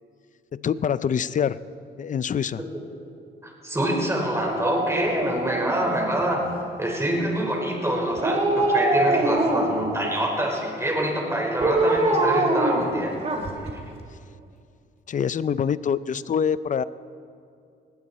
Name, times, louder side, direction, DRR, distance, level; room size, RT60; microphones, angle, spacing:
voice 1, 0.5-1.6 2.0-2.6 15.1-16.8, left 7 dB, 40° left, 17 dB, 0.5 m, -25 dB
voice 2, 3.4-6.4 6.8-13.1 13.7-13.8, right 1 dB, 15° right, -1 dB, 4.5 m, -26 dB
Dog, 4.4-6.5 8.2-9.9 11.6-13.7 14.1-14.2, right 2 dB, 30° right, 2.3 m, -24 dB
19.5 x 16.5 x 4.3 m, 2.4 s
cardioid pair, 90°, 20 cm